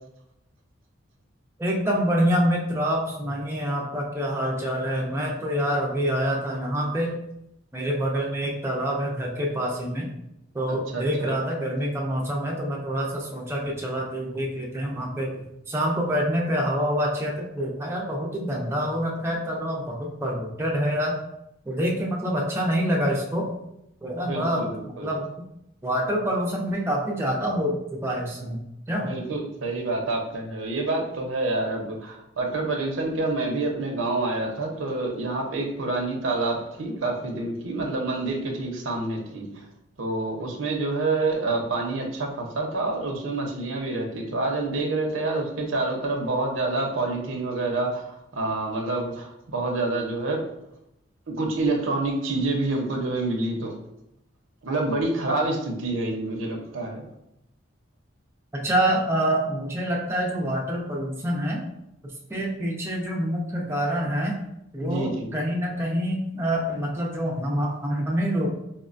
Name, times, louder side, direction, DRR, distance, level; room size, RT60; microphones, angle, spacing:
voice 1, 1.6-7.2 7.7-10.1 10.5-15.3 15.7-21.2 21.7-23.5 24.0-24.7 25.0-25.3 25.8-28.6 28.9-29.1 58.5-61.6 62.3-64.4 64.7-68.5, equal, 15° right, -3 dB, 0.4 m, -26 dB
voice 2, 10.9-11.3 24.2-25.1 29.0-39.6 40.0-50.4 51.3-53.7 54.6-57.1 64.8-65.3, right 2 dB, 90° right, 1 dB, 0.7 m, -27 dB
4.4 x 2.2 x 2.5 m, 0.83 s
head